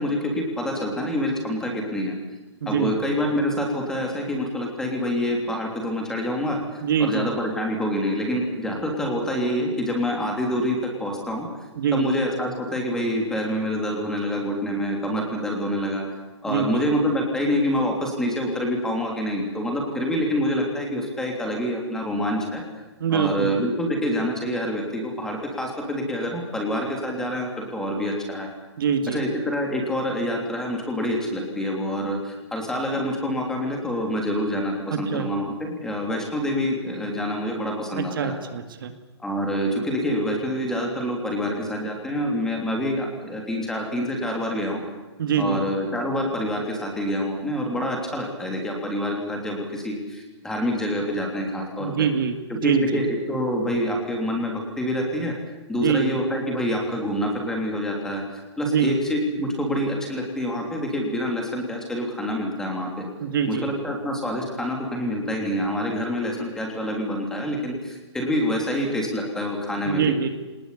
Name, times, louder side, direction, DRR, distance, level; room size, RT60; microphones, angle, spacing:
voice 1, 0.0-2.1 2.6-11.5 11.9-16.0 16.4-22.6 23.1-28.5 29.1-38.4 39.2-44.9 45.3-52.1 52.5-55.3 55.7-63.0 63.5-70.1, equal, 5° left, 1 dB, 3.3 m, -26 dB
voice 2, 2.6-2.9 6.8-7.3 11.8-12.1 16.5-16.8 23.0-23.6 28.8-29.2 35.1-35.3 37.9-38.9 45.2-45.6 51.8-53.0 55.8-56.2 58.7-59.0 63.2-63.7 69.9-70.3, right 6 dB, 50° right, 7 dB, 2.3 m, -24 dB
25.0 x 20.0 x 8.5 m, 1.2 s
hypercardioid pair, 170°, 15 cm